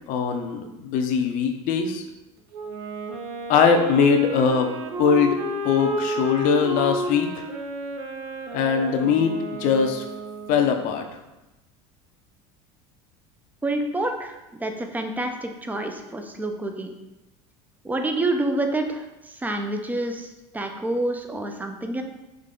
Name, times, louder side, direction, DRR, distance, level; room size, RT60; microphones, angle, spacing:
voice 1, 0.1-2.0 3.5-4.7 5.0-7.5 8.5-10.0 10.5-11.0, left 6 dB, 60° left, 4 dB, 0.7 m, -21 dB
Wind instrument woodwind instrument, 2.5-10.8, right 2 dB, 65° right, 0.7 m, -32 dB
voice 2, 13.6-16.9 17.8-19.0 19.3-22.0, right 2 dB, 10° right, 5 dB, 0.5 m, -28 dB
3.9 x 3.2 x 3.7 m, 1.0 s
hypercardioid pair, 90°, 16 cm